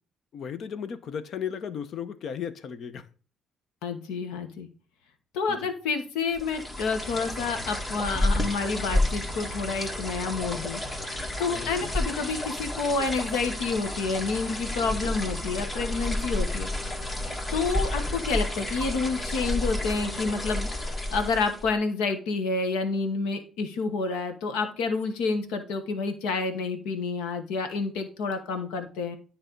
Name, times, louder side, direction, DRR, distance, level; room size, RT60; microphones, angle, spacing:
voice 1, 0.3-3.1 5.5-5.7 11.5-11.9, left 8 dB, 65° left, 0.8 m, -35 dB
voice 2, 3.8-4.7 5.3-10.8 11.4-16.7 17.5-29.2, left 4 dB, 85° left, 1.1 m, -29 dB
sound 1, 6.3-21.7, left 1 dB, 35° left, 2.0 m, -31 dB
9.9 x 3.4 x 5.1 m
supercardioid pair, 60°, 0 cm